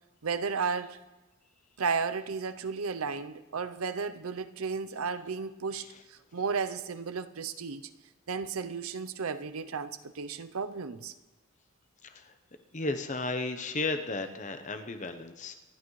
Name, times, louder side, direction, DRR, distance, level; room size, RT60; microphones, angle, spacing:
voice 1, 0.2-1.0 1.8-7.8 8.3-11.1, right 5 dB, 90° right, 11 dB, 0.6 m, -33 dB
voice 2, 12.0-12.4 12.7-15.5, left 3 dB, 35° left, 8 dB, 0.9 m, -34 dB
25.5 x 11.0 x 3.2 m, 1.1 s
head